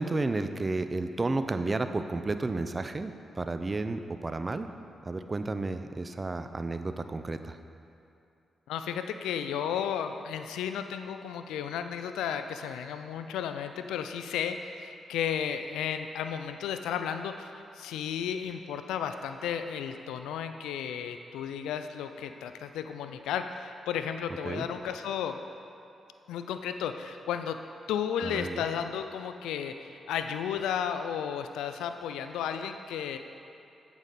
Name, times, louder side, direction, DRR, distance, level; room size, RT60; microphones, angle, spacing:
voice 1, 0.0-4.7 5.0-7.6 24.4-24.7 28.2-28.6, right 2 dB, 35° right, 9 dB, 0.5 m, -32 dB
voice 2, 8.7-25.4 26.3-27.6 27.9-33.2, left 8 dB, 80° left, 8 dB, 0.3 m, -33 dB
8.9 x 7.1 x 4.1 m, 2.6 s
hypercardioid pair, 40°, 0 cm